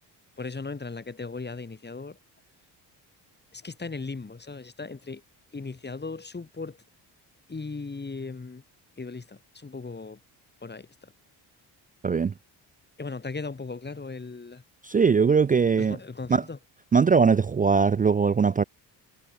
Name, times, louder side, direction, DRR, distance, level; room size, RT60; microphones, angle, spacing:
voice 1, 0.4-2.2 3.5-5.2 5.5-6.8 7.5-8.6 9.0-10.2 10.6-11.1 13.0-14.6 15.8-16.6, left 4 dB, 25° left, 3.0 m, -37 dB
voice 2, 12.0-12.3 14.9-16.0 16.3-16.4 16.9-18.6, right 5 dB, 20° right, 0.4 m, -20 dB
supercardioid pair, 70°, 44 cm